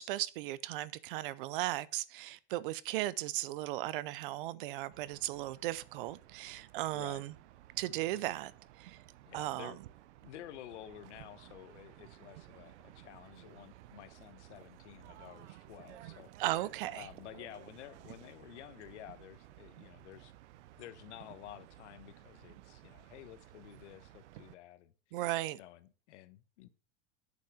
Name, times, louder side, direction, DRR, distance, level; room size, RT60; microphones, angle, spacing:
voice 1, 0.0-7.3 7.8-8.5 8.8-9.0 9.3-9.7 16.4-17.1 25.1-25.6, right 16 dB, 50° right, 0.5 m, -36 dB
sound 1, 4.9-24.5, right 14 dB, 80° right, 0.8 m, -56 dB
voice 2, 6.9-7.3 9.3-9.8 10.2-16.3 16.9-20.3 20.8-25.2 25.5-26.7, left 13 dB, 90° left, 1.1 m, -52 dB
8.4 x 6.6 x 4.8 m
supercardioid pair, 180°, 34 cm